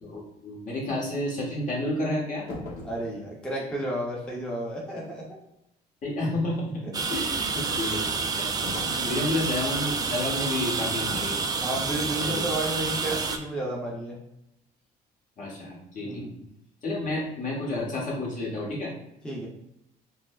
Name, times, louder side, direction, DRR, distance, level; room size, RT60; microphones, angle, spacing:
voice 1, 0.0-2.5 6.0-6.8 7.1-8.6 9.1-11.4 12.0-12.4 15.4-16.3 16.8-18.9, left 1 dB, 50° left, -4 dB, 1.3 m, -30 dB
sound 1, 2.5-3.1 8.6-9.1 11.1-11.4 11.8-12.0, left 1 dB, 70° left, 1.0 m, -38 dB
voice 2, 2.8-5.4 6.8-7.0 8.9-9.3 11.6-14.2 16.0-16.5 19.2-19.5, right 1 dB, 5° left, -4 dB, 0.7 m, -32 dB
sound 2, 6.9-13.4, right 4 dB, 25° right, 0.3 m, -29 dB
4.5 x 2.1 x 2.4 m, 0.84 s
cardioid pair, 110°, 17 cm